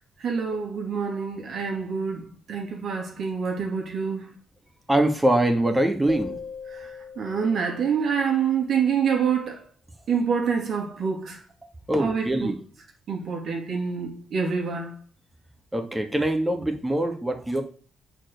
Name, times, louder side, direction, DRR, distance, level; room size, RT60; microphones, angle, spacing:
voice 1, 0.2-4.3 7.2-9.6 10.1-11.4 12.0-12.6 13.1-14.9, right 6 dB, 55° right, 2.6 m, -26 dB
voice 2, 4.9-6.4 11.9-12.6 15.7-17.6, right 1 dB, 15° right, 2.2 m, -23 dB
sound 1, 6.1-8.7, left 5 dB, 35° left, 1.6 m, -40 dB
8.5 x 5.0 x 6.7 m
hypercardioid pair, 40°, 0 cm